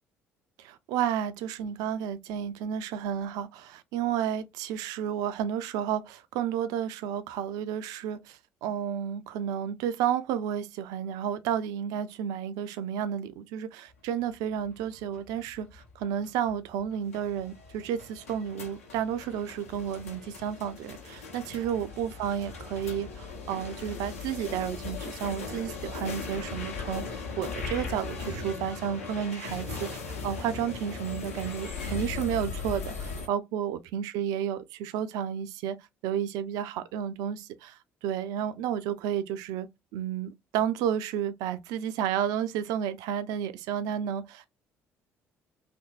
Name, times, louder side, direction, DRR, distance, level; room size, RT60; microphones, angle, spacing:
voice 1, 0.6-35.8 36.0-39.7 39.9-44.5, right 9 dB, 55° right, 0.4 m, -32 dB
sound 1, 14.7-33.3, left 4 dB, 75° left, 0.7 m, -38 dB
2.8 x 2.6 x 2.3 m
figure-of-eight pair, 50°, 7 cm